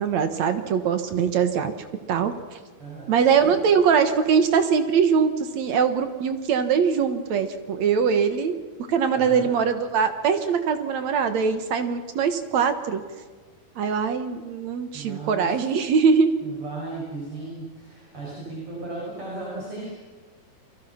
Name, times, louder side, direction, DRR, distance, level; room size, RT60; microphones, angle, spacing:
voice 1, 0.0-1.7 2.1-2.3 3.1-8.6 8.9-13.0 13.8-16.3, right 6 dB, 60° right, 8 dB, 2.4 m, -22 dB
voice 2, 2.8-3.8 9.1-9.5 14.9-15.7 16.4-19.9, right 2 dB, 35° right, -4 dB, 6.8 m, -36 dB
29.5 x 23.5 x 5.9 m, 1.5 s
omnidirectional pair, 4.2 m